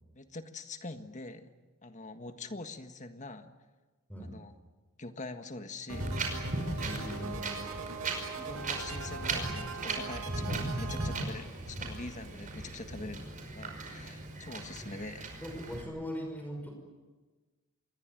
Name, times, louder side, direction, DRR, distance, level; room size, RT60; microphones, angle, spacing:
voice 1, 0.1-1.5 1.8-3.5 4.2-4.5 5.0-6.2 8.4-13.3 13.5-15.2, left 2 dB, 35° left, 8 dB, 1.7 m, -44 dB
Wind, 5.9-15.8, right 2 dB, 35° right, 5.4 m, -37 dB
sound 1, 5.9-11.2, right 4 dB, 70° right, 2.8 m, -41 dB
voice 2, 6.8-7.5 14.8-14.9 15.4-16.7, equal, 10° left, 3 dB, 5.6 m, -40 dB
27.5 x 22.0 x 9.2 m, 1.3 s
head